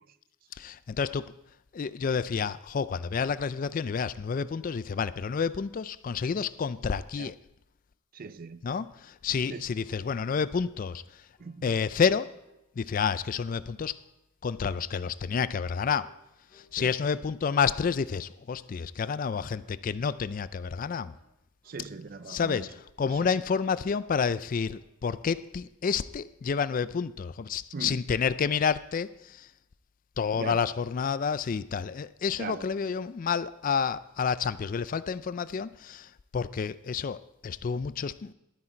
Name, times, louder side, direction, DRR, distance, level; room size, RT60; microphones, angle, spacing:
voice 1, 0.6-1.3 1.7-7.4 8.6-11.2 11.6-12.3 12.8-14.0 14.4-16.1 16.5-21.1 22.3-29.5 30.2-38.3, left 6 dB, 40° left, 0.3 m, -29 dB
voice 2, 8.1-8.7 9.5-9.7 11.4-11.7 16.8-16.9 21.7-22.7 23.1-23.2 27.7-28.0 30.3-30.6 32.4-32.7, right 4 dB, 45° right, 0.4 m, -39 dB
sound 1, 8.8-10.1 10.3-10.6 10.8-11.5 11.9-12.6 12.9-13.6 13.9-14.2 14.4-15.2 15.5-15.7 16.0-16.2 16.5-17.2 17.5-17.7 18.0-18.3 18.5-18.8 19.0-19.3 19.6-19.8 20.1-20.3 20.6-20.8 21.1-21.3 21.6-21.9 22.1-22.4 22.6-23.4 23.7-23.9 24.2-24.4 24.7-24.9, left 2 dB, 10° left, 4.4 m, -64 dB
12.5 x 9.7 x 4.4 m
head